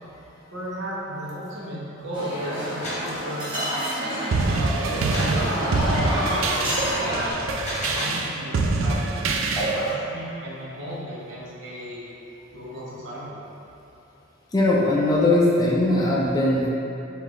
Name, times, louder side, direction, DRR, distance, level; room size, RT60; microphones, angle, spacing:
voice 1, 0.5-3.7 4.4-7.3 7.9-9.4 9.7-12.2 12.5-13.4, equal, 65° right, -7 dB, 1.1 m, -35 dB
sound 1, 2.1-7.3, equal, 25° right, 1.0 m, -28 dB
sound 2, 2.8-3.1 5.1-5.4 7.4-8.3, left 1 dB, 35° left, 1.1 m, -32 dB
sound 3, 4.3-10.0, right 3 dB, 90° right, 0.4 m, -25 dB
voice 2, 14.5-16.7, left 1 dB, 20° left, -5 dB, 0.4 m, -20 dB
5.0 x 2.7 x 3.8 m, 3.0 s
head